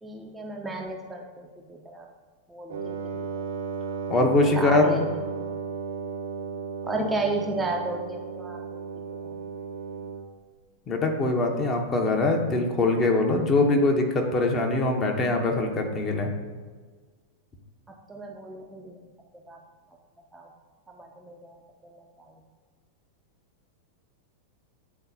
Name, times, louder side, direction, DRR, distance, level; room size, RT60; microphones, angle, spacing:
voice 1, 0.0-2.1 2.5-3.5 4.5-5.0 6.8-8.8 9.1-9.3 18.1-19.0 19.5-19.6 20.3-20.5 20.9-22.3, right 2 dB, 10° right, 0 dB, 0.6 m, -33 dB
Wind instrument woodwind instrument, 2.7-10.3, right 5 dB, 60° right, 0.6 m, -34 dB
voice 2, 4.1-4.8 10.9-16.3, left 2 dB, 25° left, 2 dB, 0.8 m, -23 dB
8.9 x 3.9 x 2.7 m, 1.4 s
figure-of-eight pair, 90°, 0 cm